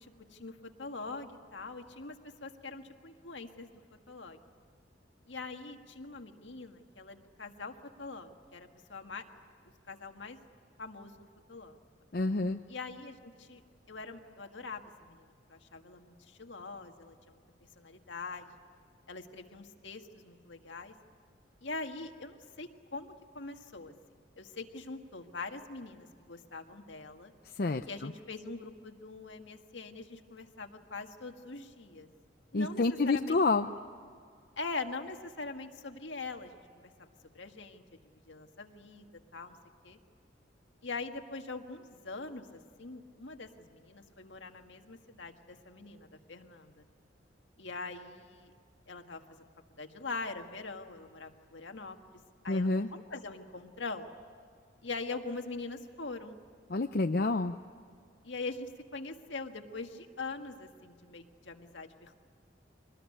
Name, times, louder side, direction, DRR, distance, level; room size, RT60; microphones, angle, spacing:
voice 1, 0.3-2.2 2.4-3.7 4.1-4.4 5.3-9.2 9.9-10.4 10.8-11.8 12.7-13.6 13.9-17.4 17.8-18.5 19.1-20.9 21.6-23.9 24.4-27.3 27.8-32.1 32.5-33.4 34.6-37.1 37.3-37.8 38.3-39.6 39.8-40.0 40.8-46.8 47.6-48.5 48.9-49.5 49.8-52.2 52.4-54.2 54.8-56.4 58.2-62.2, left 3 dB, 75° left, 5 dB, 1.8 m, -43 dB
voice 2, 12.1-12.6 27.6-28.1 32.5-33.7 52.5-52.9 56.7-57.5, left 3 dB, 50° left, 6 dB, 0.6 m, -28 dB
24.5 x 20.0 x 9.9 m, 2.2 s
head